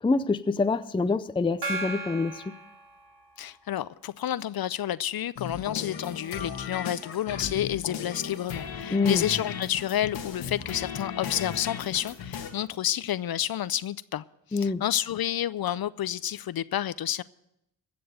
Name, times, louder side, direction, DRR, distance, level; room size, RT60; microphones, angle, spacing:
voice 1, 0.0-2.4 8.9-9.2 14.5-14.8, left 3 dB, 10° left, 0.5 m, -26 dB
Gong, 1.6-3.6, right 2 dB, 65° right, 3.6 m, -36 dB
voice 2, 3.4-14.2 14.5-17.2, left 11 dB, 55° left, 0.5 m, -30 dB
sound 1, 5.4-12.5, left 7 dB, 90° left, 1.5 m, -36 dB
15.5 x 6.9 x 8.0 m
cardioid pair, 50°, 44 cm